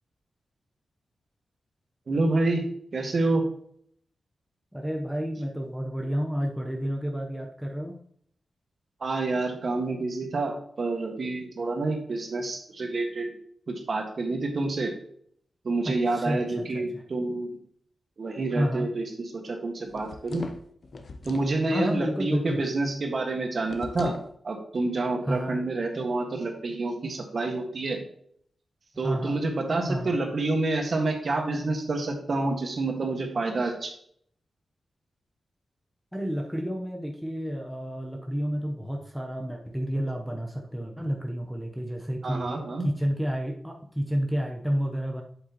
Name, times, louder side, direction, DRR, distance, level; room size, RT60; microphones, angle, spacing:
voice 1, 2.1-2.7 2.9-3.5 9.0-13.3 13.7-14.9 15.6-17.6 18.2-20.5 21.2-24.2 24.4-28.0 29.0-33.9 42.2-42.9, right 2 dB, 50° right, 3 dB, 1.5 m, -28 dB
voice 2, 4.7-8.0 15.8-17.0 18.5-18.9 21.7-22.6 25.2-25.6 29.0-29.4 29.9-30.2 36.1-45.2, equal, ahead, 1 dB, 0.8 m, -30 dB
sound 1, 19.9-21.6 23.7-24.3, left 3 dB, 50° left, 0.6 m, -39 dB
7.8 x 7.8 x 2.9 m, 0.64 s
wide cardioid pair, 120°, 0 cm